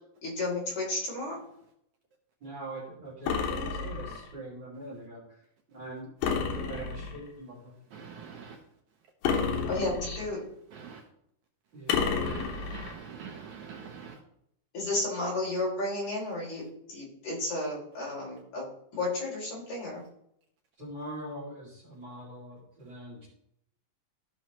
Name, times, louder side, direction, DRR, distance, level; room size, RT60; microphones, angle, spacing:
voice 1, 0.2-1.4 9.7-10.4 14.7-16.6 16.9-20.0, left 2 dB, 55° left, -4 dB, 4.4 m, -32 dB
voice 2, 2.4-5.2 5.7-7.7 11.7-12.1 20.8-23.3, right 1 dB, 35° right, -5 dB, 2.7 m, -43 dB
sound 1, 3.3-4.3 6.2-7.3 9.2-10.4 11.9-13.0, left 5 dB, 85° left, 2.9 m, -30 dB
voice 3, 7.9-8.6 10.7-11.0 12.2-14.2, right 6 dB, 70° right, 1 dB, 2.0 m, -44 dB
14.0 x 6.2 x 3.0 m, 0.74 s
omnidirectional pair, 4.0 m